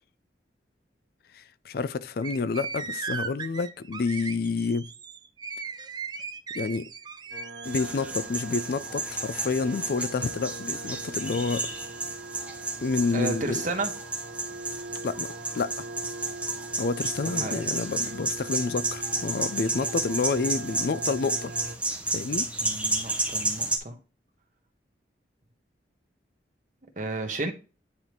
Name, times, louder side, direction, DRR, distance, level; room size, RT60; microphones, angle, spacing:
voice 1, 1.3-4.9 6.5-6.9 7.7-11.7 12.8-13.6 15.0-15.7 16.8-21.5 22.1-22.5, left 4 dB, 55° left, 0.4 m, -29 dB
sound 1, 2.2-7.9, right 5 dB, 25° right, 0.4 m, -37 dB
sound 2, 7.3-21.8, right 2 dB, 70° right, 1.0 m, -41 dB
sound 3, 7.6-23.8, right 2 dB, 5° right, 0.8 m, -32 dB
voice 2, 13.1-13.9 17.3-17.6 22.6-23.9 27.0-27.5, right 2 dB, 45° right, 1.2 m, -32 dB
9.7 x 3.4 x 3.0 m
head